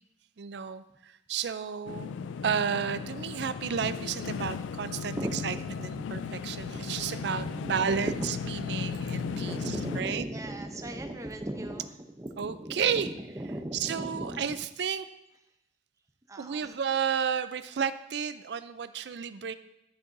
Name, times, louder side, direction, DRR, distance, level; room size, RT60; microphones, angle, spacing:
voice 1, 0.4-2.2 2.4-10.3 12.4-13.1 13.7-15.1 16.4-19.5, right 7 dB, 65° right, 13 dB, 0.4 m, -32 dB
sound 1, 1.9-10.0, left 6 dB, 85° left, 0.3 m, -36 dB
sound 2, 7.0-11.7, equal, 45° right, 2.1 m, -54 dB
voice 2, 8.6-11.9 12.2-14.4 16.3-16.6, right 1 dB, 15° right, 5 dB, 0.6 m, -37 dB
12.0 x 6.7 x 2.6 m, 0.89 s
head